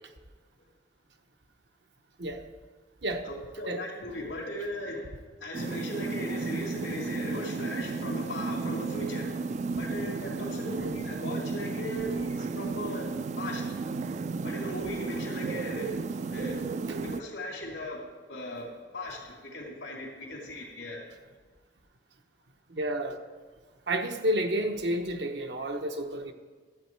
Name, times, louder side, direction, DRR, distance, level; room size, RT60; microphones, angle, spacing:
voice 1, 3.2-9.4 9.8-13.7 14.4-16.0 16.3-16.6 17.0-18.0 18.3-21.0, left 1 dB, 90° left, -7 dB, 2.4 m, -38 dB
sound 1, 5.5-17.2, right 4 dB, 40° right, 0.3 m, -33 dB
voice 2, 22.7-23.2 23.9-26.3, right 1 dB, 70° right, 5 dB, 0.9 m, -30 dB
12.5 x 8.0 x 4.5 m, 1.4 s
head